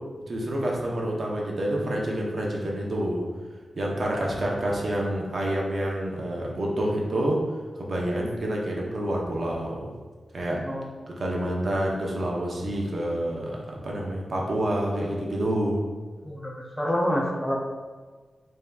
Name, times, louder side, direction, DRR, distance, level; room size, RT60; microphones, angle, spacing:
voice 1, 0.3-3.2 3.7-7.4 7.8-9.9 10.3-10.6 11.1-15.8, right 1 dB, 55° right, -2 dB, 0.7 m, -28 dB
voice 2, 16.2-17.7, equal, 5° left, -2 dB, 0.5 m, -28 dB
5.5 x 2.7 x 2.3 m, 1.4 s
wide cardioid pair, 135°, 0 cm